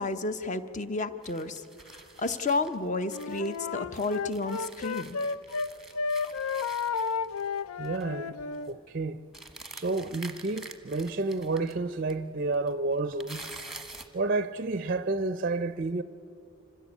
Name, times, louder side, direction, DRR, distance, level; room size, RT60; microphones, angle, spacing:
voice 1, 0.0-1.6 2.2-5.2, left 3 dB, 35° left, 0.8 m, -31 dB
sound 1, 1.2-3.6 3.9-7.6 7.8-8.1 8.4-8.7 9.3-11.7 12.1-12.2 12.5-14.2, right 3 dB, ahead, 1.1 m, -47 dB
Wind instrument woodwind instrument, 3.1-5.7 5.9-8.7, left 5 dB, 80° left, 0.5 m, -32 dB
voice 2, 7.8-8.4 8.7-9.2 9.7-13.5 14.1-16.0, right 3 dB, 40° right, 0.5 m, -30 dB
25.5 x 15.5 x 8.3 m
head